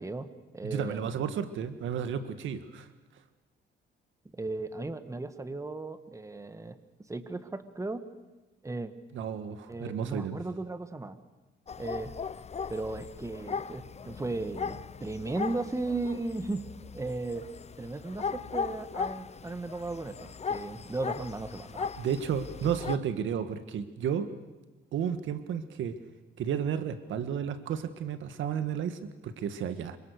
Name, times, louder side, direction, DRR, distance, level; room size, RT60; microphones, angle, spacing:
voice 1, 0.0-1.1 4.3-6.8 7.1-8.0 8.6-8.9 9.7-11.2 11.8-12.1 12.7-16.6 16.9-17.5 17.8-21.9 22.6-22.7, right 2 dB, 15° right, 10 dB, 1.7 m, -36 dB
voice 2, 0.6-2.9 9.1-10.4 22.0-24.3 24.9-26.0 26.4-30.0, right 8 dB, 75° right, 11 dB, 1.7 m, -32 dB
sound 1, 11.7-23.0, left 6 dB, 35° left, 0.8 m, -38 dB
27.0 x 24.5 x 6.6 m, 1.1 s
cardioid pair, 90°, 20 cm